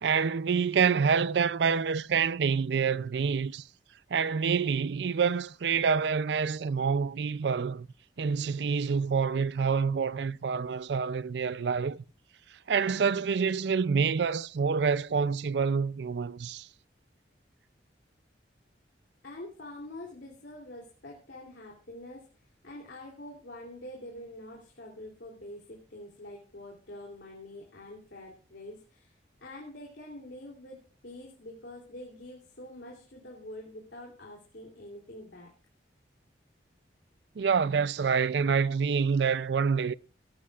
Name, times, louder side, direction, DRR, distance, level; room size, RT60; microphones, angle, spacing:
voice 1, 0.0-3.6 4.1-7.9 8.2-12.0 12.7-16.7 37.4-39.9, right 6 dB, 75° right, 0.4 m, -27 dB
voice 2, 19.2-22.2 22.6-35.5, left 1 dB, 85° left, 3.1 m, -46 dB
19.0 x 11.0 x 2.4 m
head